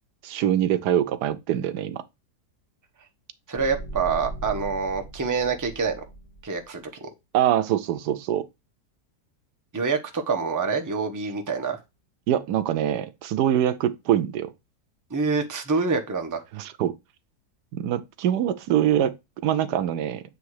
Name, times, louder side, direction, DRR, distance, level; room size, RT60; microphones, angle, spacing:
voice 1, 0.2-2.0 7.3-8.5 12.3-14.5 16.5-16.9 17.7-19.2 19.4-20.2, right 11 dB, 80° right, 1.2 m, -24 dB
sound 1, 3.5-6.7, right 2 dB, 25° left, 1.6 m, -39 dB
voice 2, 3.5-6.0 6.4-7.1 9.7-11.8 15.1-16.4, right 4 dB, 15° right, 0.7 m, -26 dB
8.2 x 3.2 x 4.7 m
omnidirectional pair, 1.8 m